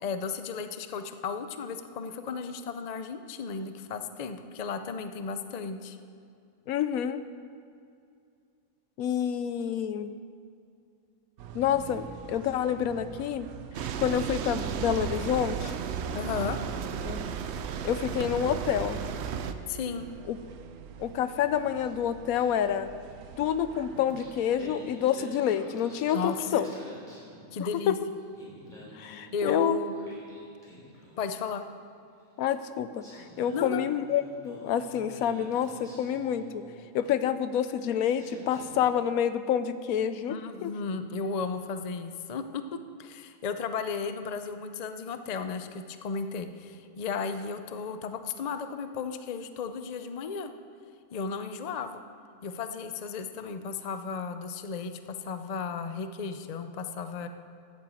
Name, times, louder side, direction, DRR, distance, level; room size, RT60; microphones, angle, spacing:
voice 1, 0.0-6.0 16.1-16.6 19.7-20.1 26.1-26.4 27.5-28.0 29.3-29.9 31.2-31.6 33.5-33.9 40.3-50.5 51.1-52.0 52.4-57.3, left 5 dB, 50° left, 9 dB, 0.5 m, -34 dB
voice 2, 6.7-7.2 9.0-10.1 11.5-13.5 14.0-15.7 17.0-17.2 17.8-19.0 20.3-20.4 21.0-22.9 23.4-26.7 27.6-27.9 28.9-29.8 32.4-36.6 36.9-40.4 40.6-40.7, left 9 dB, 80° left, 12 dB, 1.0 m, -28 dB
sound 1, 11.4-24.8, right 6 dB, 85° right, 1.2 m, -45 dB
sound 2, 13.7-19.5, right 7 dB, 60° right, 0.8 m, -34 dB
Singing, 23.9-27.9 28.2-31.4 32.4-32.5 33.0-37.2 37.8-37.9 38.2-39.0, left 1 dB, 30° left, 3.6 m, -48 dB
11.0 x 8.9 x 7.7 m, 2.4 s
omnidirectional pair, 1.5 m